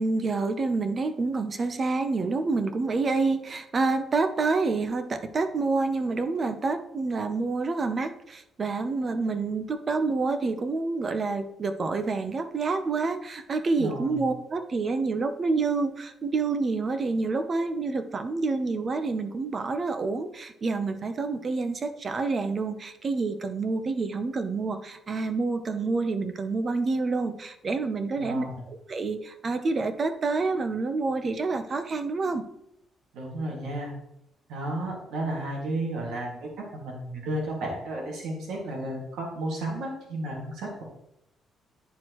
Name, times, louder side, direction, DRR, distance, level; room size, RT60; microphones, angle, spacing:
voice 1, 0.0-32.4, right 3 dB, 40° right, 9 dB, 0.7 m, -28 dB
voice 2, 13.7-14.2 28.2-28.6 33.1-33.9 34.5-40.8, right 1 dB, 85° right, -1 dB, 2.0 m, -33 dB
10.5 x 4.5 x 3.0 m, 0.80 s
cardioid pair, 90°, 0 cm